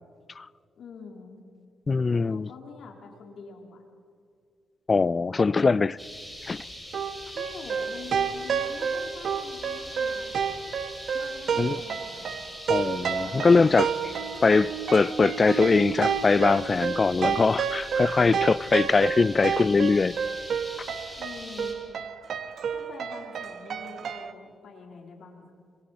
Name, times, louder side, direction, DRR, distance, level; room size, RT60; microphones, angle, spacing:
voice 1, 0.8-1.3 2.1-3.8 7.3-10.4 11.1-12.3 13.2-14.1 21.2-21.8 22.7-25.5, left 5 dB, 70° left, 3.8 m, -45 dB
voice 2, 1.9-2.5 4.9-6.0 6.5-6.6 11.6-11.8 12.7-13.9 14.4-20.1, left 4 dB, 35° left, 0.4 m, -22 dB
sound 1, 6.0-21.7, equal, ahead, 6.6 m, -42 dB
sound 2, 6.9-24.3, right 6 dB, 65° right, 1.2 m, -30 dB
26.5 x 24.5 x 4.3 m
cardioid pair, 75°, 0 cm